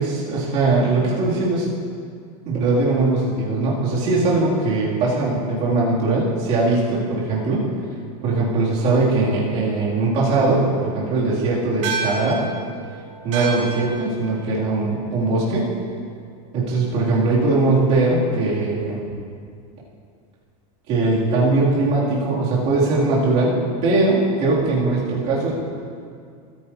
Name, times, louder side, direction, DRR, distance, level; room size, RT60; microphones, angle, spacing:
voice 1, 0.0-1.7 2.5-7.7 8.2-12.4 13.2-15.7 16.5-19.1 20.9-25.5, right 3 dB, 35° right, -7 dB, 3.0 m, -20 dB
sound 1, 11.8-16.5, right 4 dB, 55° right, 2.0 m, -32 dB
19.0 x 9.3 x 2.9 m, 2.2 s
supercardioid pair, 180°, 19 cm